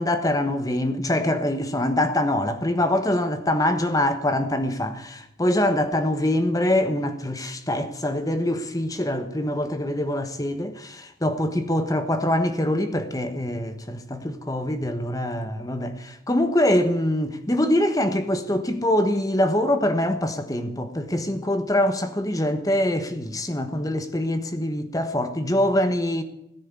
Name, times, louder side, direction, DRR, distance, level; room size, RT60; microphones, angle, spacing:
voice 1, 0.0-26.2, left 1 dB, 20° left, 1.2 m, -24 dB
17.0 x 10.0 x 8.2 m
head